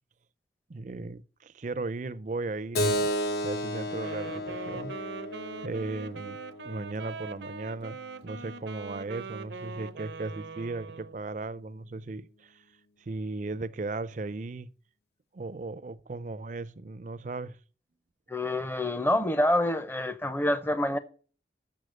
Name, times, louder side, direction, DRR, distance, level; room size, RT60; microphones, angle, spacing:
voice 1, 0.7-3.1 3.4-4.9 5.6-6.4 6.6-8.0 8.2-12.6 13.0-14.7 15.3-17.6, right 3 dB, 45° right, 0.4 m, -36 dB
Keyboard (musical), 2.7-7.9, equal, 65° left, 0.8 m, -33 dB
Wind instrument woodwind instrument, 3.9-11.2, right 4 dB, 85° right, 0.6 m, -42 dB
voice 2, 18.3-21.0, left 1 dB, 10° left, 0.6 m, -27 dB
6.9 x 6.5 x 7.7 m
head